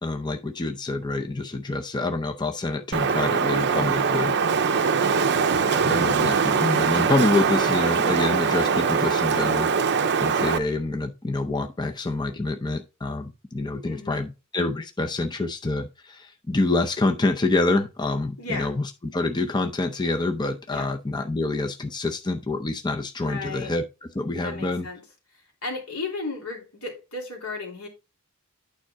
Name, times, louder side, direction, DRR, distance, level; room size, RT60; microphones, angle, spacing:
voice 1, 0.0-4.5 5.8-9.7 10.2-18.7 19.1-23.8 24.1-24.9, left 2 dB, 20° left, 0.6 m, -26 dB
Wind, 2.9-10.6, right 5 dB, 50° right, 0.6 m, -22 dB
voice 2, 13.8-14.3 18.4-18.8 20.7-20.9 23.2-23.7 24.4-25.0 25.3-27.9, left 3 dB, 80° left, 2.9 m, -34 dB
9.0 x 4.8 x 3.5 m
head